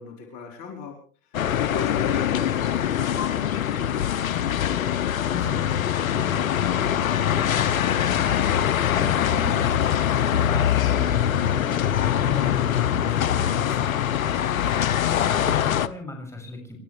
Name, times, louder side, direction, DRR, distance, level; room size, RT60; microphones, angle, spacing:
voice 1, 0.0-5.2, left 5 dB, 45° left, 2 dB, 4.9 m, -38 dB
sound 1, 1.3-15.9, left 10 dB, 85° left, 1.0 m, -23 dB
voice 2, 5.3-11.9 12.1-14.7 15.1-16.8, left 1 dB, 5° left, 2 dB, 7.0 m, -38 dB
30.0 x 14.0 x 3.4 m, 0.41 s
hypercardioid pair, 115°, 40 cm